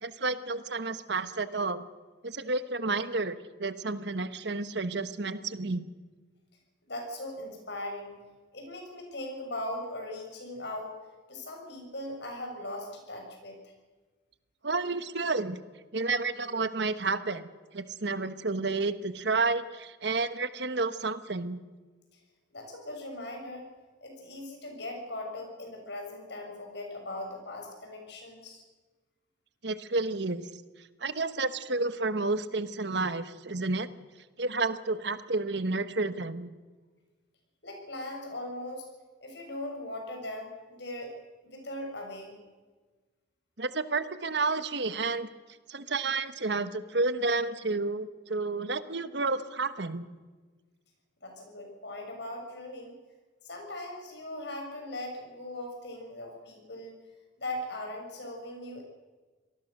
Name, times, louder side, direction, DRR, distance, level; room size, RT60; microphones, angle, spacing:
voice 1, 0.0-1.8 2.2-5.8 14.6-15.6 15.9-17.5 17.7-21.6 29.6-30.4 31.0-33.9 34.4-36.5 43.6-45.3 45.7-50.1, right 3 dB, 65° right, 12 dB, 1.2 m, -30 dB
voice 2, 6.9-8.1 8.5-11.0 11.3-13.6 22.5-23.7 24.0-28.6 37.6-38.9 39.2-41.1 41.4-42.4 51.2-52.9 53.4-57.0 57.4-58.8, left 1 dB, 65° left, 2 dB, 6.7 m, -39 dB
26.5 x 19.0 x 6.7 m, 1.3 s
head